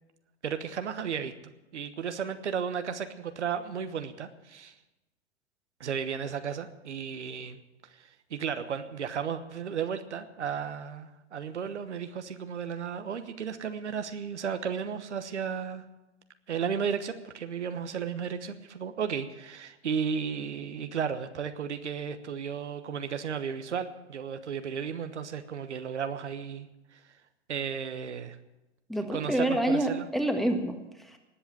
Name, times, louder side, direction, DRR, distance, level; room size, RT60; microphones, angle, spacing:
voice 1, 0.4-1.3 1.7-4.7 5.8-7.6 7.9-15.8 16.5-27.0 27.5-28.4 29.1-30.1, right 7 dB, 75° right, 9 dB, 1.2 m, -34 dB
voice 2, 28.9-31.2, right 1 dB, ahead, 4 dB, 1.6 m, -28 dB
19.5 x 8.2 x 7.5 m, 1.0 s
figure-of-eight pair, 100°, 35 cm